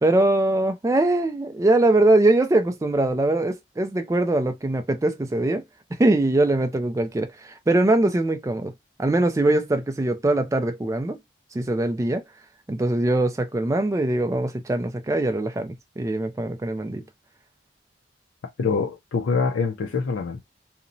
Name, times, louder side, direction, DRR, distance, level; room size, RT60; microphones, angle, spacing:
voice 1, 0.0-5.6 6.0-8.7 9.0-11.2 11.5-12.2 12.7-17.0, right 2 dB, 15° right, 0.3 m, -22 dB
voice 2, 18.6-20.4, left 4 dB, 75° left, 0.4 m, -25 dB
2.8 x 2.0 x 2.5 m
head